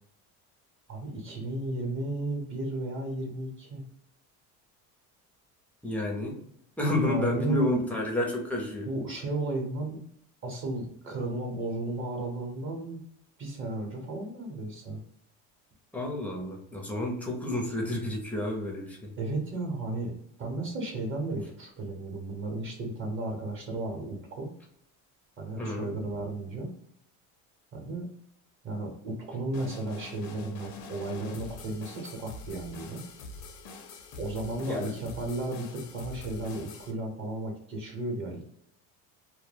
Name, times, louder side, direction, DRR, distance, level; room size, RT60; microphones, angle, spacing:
voice 1, 0.9-3.8 6.9-7.7 8.9-10.0 10.4-13.0 13.4-15.0 19.2-20.1 20.4-24.5 25.4-26.7 27.7-28.0 28.6-33.0 34.2-38.4, right 2 dB, 30° right, 1 dB, 0.9 m, -34 dB
voice 2, 5.8-6.4 6.8-8.9 15.9-19.1 25.6-25.9 34.7-34.9, left 1 dB, 5° left, -1 dB, 0.5 m, -30 dB
sound 1, 29.5-36.9, left 3 dB, 50° left, 0.5 m, -45 dB
2.2 x 2.1 x 3.2 m, 0.70 s
cardioid pair, 140°, 38 cm